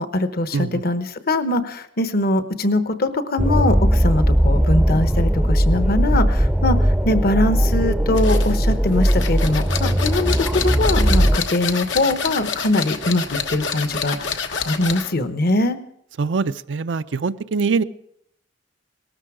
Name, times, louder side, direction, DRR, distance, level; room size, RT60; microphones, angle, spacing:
voice 1, 0.0-10.3 10.6-15.8, left 2 dB, 55° left, 11 dB, 1.0 m, -22 dB
voice 2, 0.5-0.8 16.2-17.8, right 4 dB, 80° right, 11 dB, 0.5 m, -23 dB
sound 1, 3.4-11.4, equal, 5° right, 0.5 m, -18 dB
sound 2, 8.1-15.2, left 6 dB, 85° left, 1.3 m, -28 dB
18.5 x 13.0 x 4.9 m, 0.71 s
head